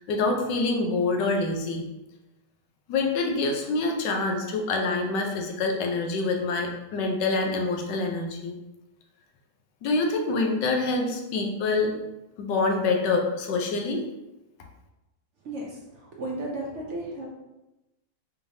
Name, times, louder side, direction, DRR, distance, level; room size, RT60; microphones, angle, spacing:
voice 1, 0.1-1.8 2.9-8.5 9.8-11.9 12.4-14.0, left 3 dB, 80° left, 2 dB, 1.3 m, -26 dB
voice 2, 15.4-17.3, right 1 dB, 65° right, -2 dB, 0.7 m, -34 dB
4.9 x 3.3 x 2.7 m, 0.98 s
omnidirectional pair, 1.9 m